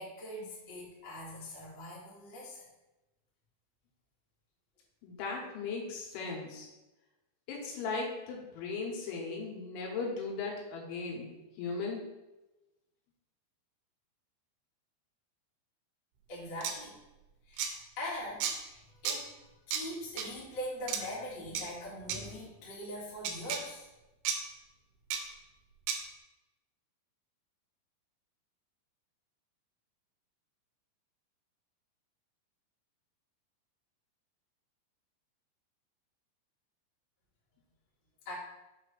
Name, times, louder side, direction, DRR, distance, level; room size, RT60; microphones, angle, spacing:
voice 1, 0.0-2.6 16.3-17.0 17.5-23.9 38.2-38.3, left 1 dB, 60° left, -6 dB, 1.1 m, -42 dB
voice 2, 5.0-6.7 7.5-12.0, left 4 dB, 80° left, -2 dB, 3.7 m, -37 dB
sound 1, 16.6-16.7 17.6-17.7 18.4-18.5 19.1-19.2 19.7-19.8 20.2-20.3 20.9-21.0 21.6-21.7 22.1-22.2 23.2-23.6 24.3-24.4 25.1-25.2 25.9-26.0, right 8 dB, 90° right, 3.1 m, -32 dB
7.6 x 2.9 x 5.0 m, 1.0 s
omnidirectional pair, 5.4 m